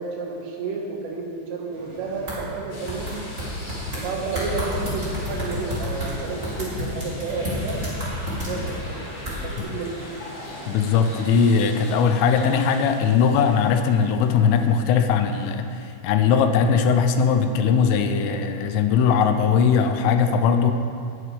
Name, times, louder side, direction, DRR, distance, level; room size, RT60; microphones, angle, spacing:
voice 1, 0.0-3.2 4.0-7.8 8.4-8.7 9.4-10.1, right 4 dB, 80° right, 0 dB, 4.0 m, -31 dB
sound 1, 1.7-12.4, right 1 dB, 40° right, 2.2 m, -43 dB
sound 2, 2.3-2.4 2.9-4.0 4.3-8.8 9.2-9.6, equal, 25° right, 1.8 m, -29 dB
sound 3, 2.7-14.9 15.3-15.5 17.8-17.9, left 2 dB, 55° left, 4.6 m, -41 dB
voice 2, 10.7-20.7, left 6 dB, 85° left, 7 dB, 3.3 m, -20 dB
18.5 x 9.6 x 3.3 m, 2.3 s
omnidirectional pair, 5.7 m